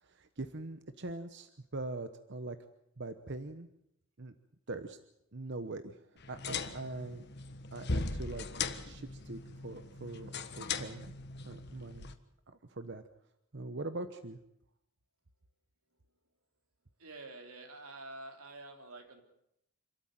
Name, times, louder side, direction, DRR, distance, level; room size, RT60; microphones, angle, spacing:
voice 1, 0.0-2.6 3.0-3.7 4.2-4.3 4.7-5.0 5.3-6.0 6.3-7.3 7.7-8.5 8.8-11.1 11.4-12.1 12.7-13.0 13.5-14.4, right 2 dB, 55° right, 9 dB, 1.0 m, -42 dB
sound 1, 6.2-12.1, left 4 dB, 50° left, 1.5 m, -39 dB
voice 2, 17.0-19.2, right 2 dB, 90° right, 5 dB, 3.5 m, -48 dB
27.0 x 13.0 x 9.2 m, 0.80 s
head